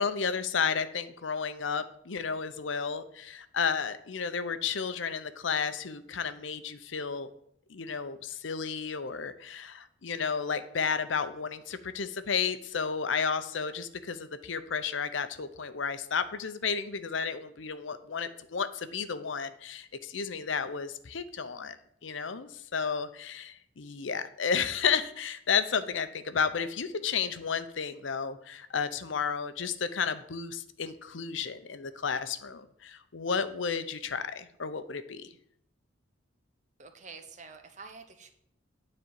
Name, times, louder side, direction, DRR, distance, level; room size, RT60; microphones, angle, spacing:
voice 1, 0.0-7.3 7.7-21.8 22.0-35.3, left 6 dB, 80° left, 11 dB, 0.7 m, -32 dB
voice 2, 36.8-38.3, right 4 dB, 40° right, 7 dB, 1.0 m, -48 dB
9.6 x 4.3 x 7.5 m, 0.72 s
head